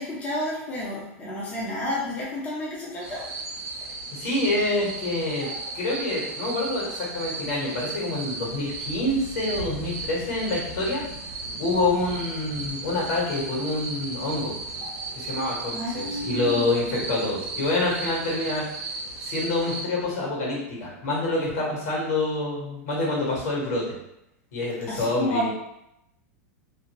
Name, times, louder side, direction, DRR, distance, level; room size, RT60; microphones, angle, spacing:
voice 1, 0.0-3.5 3.8-4.0 15.7-16.7 24.9-25.5, left 1 dB, 20° left, -6 dB, 0.6 m, -31 dB
sound 1, 3.0-19.8, right 3 dB, 45° right, 0.6 m, -35 dB
voice 2, 4.1-5.5 5.7-11.0 11.6-14.5 15.1-18.6 19.2-23.9 24.5-25.5, left 2 dB, 70° left, -3 dB, 1.3 m, -27 dB
2.6 x 2.0 x 3.0 m, 0.82 s
supercardioid pair, 140°, 9 cm